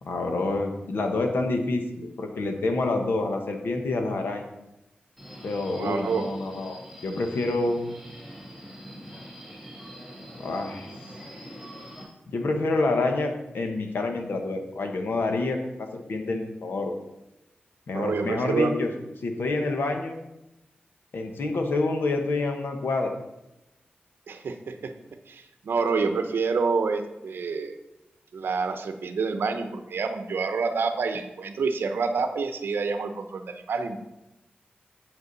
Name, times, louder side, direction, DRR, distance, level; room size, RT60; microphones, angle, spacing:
voice 1, 0.0-4.5 5.4-6.8 7.0-7.8 10.4-10.9 12.3-16.9 17.9-18.9 19.2-20.2 21.1-23.1, left 2 dB, 75° left, 4 dB, 1.2 m, -27 dB
Subway metro underground, 5.2-12.0, equal, ahead, 2.8 m, -44 dB
voice 2, 5.8-6.3 17.9-18.7 24.3-24.9 25.3-27.8 28.3-34.0, right 4 dB, 80° right, 8 dB, 0.7 m, -28 dB
8.2 x 7.3 x 4.1 m, 0.92 s
wide cardioid pair, 160°, 4 cm